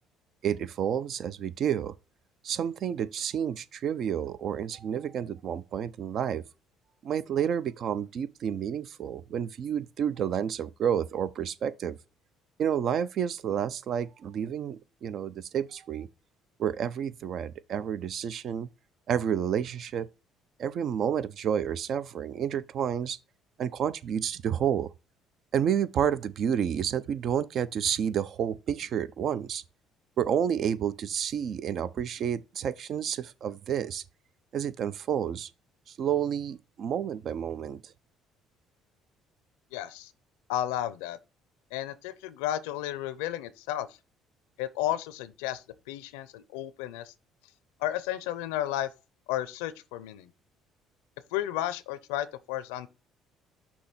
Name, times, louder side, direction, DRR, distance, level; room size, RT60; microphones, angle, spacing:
voice 1, 0.4-1.9 2.4-6.4 7.0-12.0 12.6-16.1 16.6-18.7 19.1-20.1 20.6-23.2 23.6-24.9 25.5-29.6 30.2-34.0 34.5-35.5 35.9-37.9, right 8 dB, 60° right, 0.5 m, -30 dB
voice 2, 39.7-40.1 40.5-41.2 41.7-44.0 44.6-47.1 47.8-48.9 49.3-50.3 51.3-52.9, left 13 dB, 90° left, 0.5 m, -33 dB
6.2 x 2.9 x 5.7 m
supercardioid pair, 75°, 0 cm